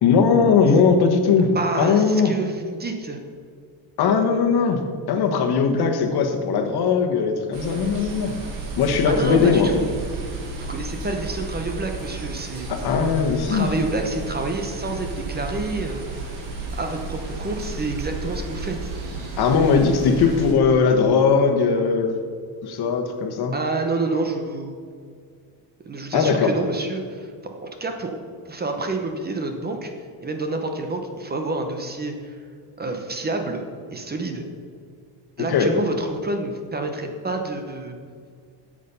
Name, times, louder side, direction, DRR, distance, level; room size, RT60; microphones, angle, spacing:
voice 1, 0.0-1.5 1.8-2.3 4.0-4.8 5.1-8.3 8.8-9.7 12.7-13.7 19.4-22.2 22.6-23.5 26.1-26.5 35.4-35.7, left 5 dB, 60° left, 4 dB, 1.3 m, -19 dB
voice 2, 1.5-3.2 9.1-9.9 10.5-12.7 13.5-16.0 16.8-18.9 23.5-24.8 25.8-28.2 28.4-29.9 30.2-32.4 32.8-33.6 33.9-34.5 35.4-38.0, right 2 dB, 20° right, 5 dB, 0.8 m, -28 dB
sound 1, 7.5-20.5, right 3 dB, 70° right, 2.3 m, -33 dB
8.1 x 7.6 x 5.5 m, 2.1 s
cardioid pair, 150°, 43 cm